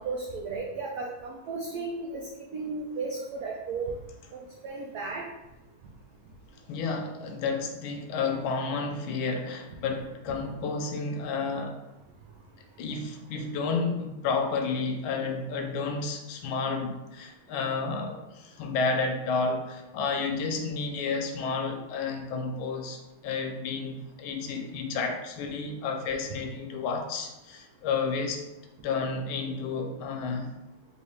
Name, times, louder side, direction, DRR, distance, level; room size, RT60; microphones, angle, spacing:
voice 1, 0.0-3.9 4.3-5.2 10.3-10.4, right 3 dB, 80° right, -1 dB, 0.8 m, -35 dB
voice 2, 6.7-11.8 12.8-28.4 28.8-30.5, left 4 dB, 85° left, 4 dB, 1.4 m, -31 dB
3.4 x 3.1 x 3.2 m, 0.99 s
omnidirectional pair, 2.2 m